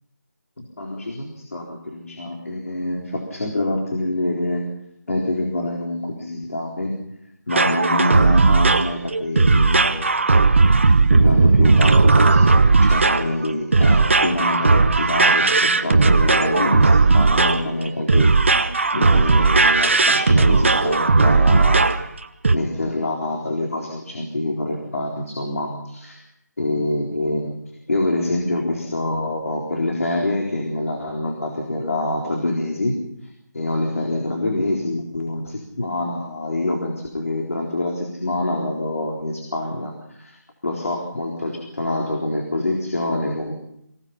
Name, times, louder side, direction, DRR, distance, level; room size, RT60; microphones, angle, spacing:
voice 1, 0.6-4.6 5.1-7.0 7.5-10.2 11.1-18.7 18.9-21.9 22.5-26.2 26.6-27.5 27.9-33.0 33.5-40.4 40.6-43.5, left 1 dB, 50° left, 0 dB, 4.1 m, -25 dB
sound 1, 7.5-22.1 22.4-22.6, right 3 dB, 40° right, 1.1 m, -16 dB
25.0 x 18.0 x 5.9 m, 0.78 s
figure-of-eight pair, 170°, 10 cm